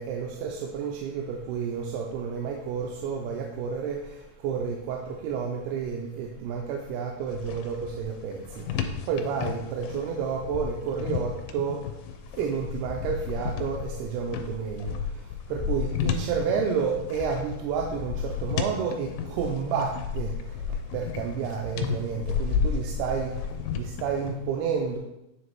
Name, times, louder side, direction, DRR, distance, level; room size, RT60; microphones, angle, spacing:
voice 1, 0.0-4.0 4.4-5.0 5.2-8.4 9.1-11.8 12.4-14.9 15.5-19.1 19.4-20.3 20.9-23.3 24.0-25.0, right 6 dB, 90° right, 1 dB, 2.7 m, -30 dB
sound 1, 7.3-24.3, left 7 dB, 90° left, 2.6 m, -33 dB
9.3 x 3.2 x 4.5 m, 0.88 s
omnidirectional pair, 4.5 m